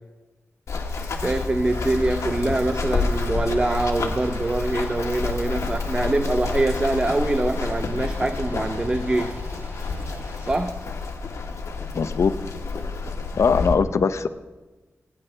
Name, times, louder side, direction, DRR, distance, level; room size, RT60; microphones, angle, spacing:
Run, 0.7-13.7, left 4 dB, 85° left, 1.5 m, -29 dB
voice 1, 1.2-9.4 10.5-10.9, right 2 dB, 20° right, 7 dB, 0.6 m, -24 dB
sound 1, 1.7-10.6, right 1 dB, 45° right, 4.8 m, -44 dB
voice 2, 11.9-12.3 13.4-14.3, left 5 dB, 70° left, 11 dB, 0.7 m, -20 dB
27.0 x 10.0 x 3.3 m, 1.2 s
wide cardioid pair, 140°, 5 cm